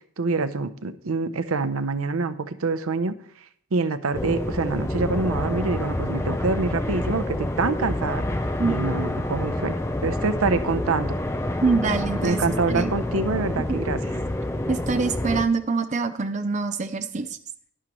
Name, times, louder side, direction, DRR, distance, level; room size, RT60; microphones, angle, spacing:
voice 1, 0.0-3.2 3.7-8.2 8.7-9.8 10.0-11.2 12.2-14.0, right 3 dB, 80° right, 12 dB, 0.7 m, -26 dB
sound 1, 4.1-15.4, left 1 dB, 10° left, 0.6 m, -27 dB
voice 2, 11.6-12.9 13.7-13.8 14.7-17.4, right 4 dB, 35° right, 9 dB, 0.5 m, -25 dB
11.0 x 11.0 x 3.0 m, 0.64 s
head